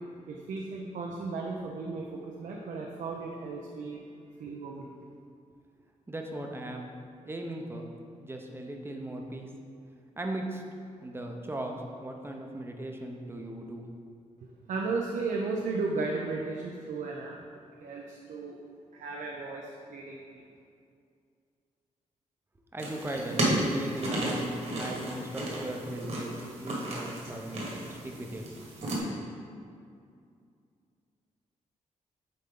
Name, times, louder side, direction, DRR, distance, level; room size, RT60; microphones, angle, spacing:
voice 1, 0.3-4.1 4.4-4.9 14.7-17.4 17.8-18.6 18.9-20.4, right 3 dB, 70° right, -1 dB, 0.6 m, -35 dB
voice 2, 6.1-6.9 7.3-7.9 8.2-9.5 10.2-10.6 11.0-13.8 22.7-23.4 23.7-28.4, right 1 dB, 15° right, 2 dB, 0.7 m, -38 dB
sound 1, 22.8-29.0, right 1 dB, 55° right, 1.5 m, -33 dB
7.7 x 4.2 x 3.8 m, 2.3 s
cardioid pair, 110°, 13 cm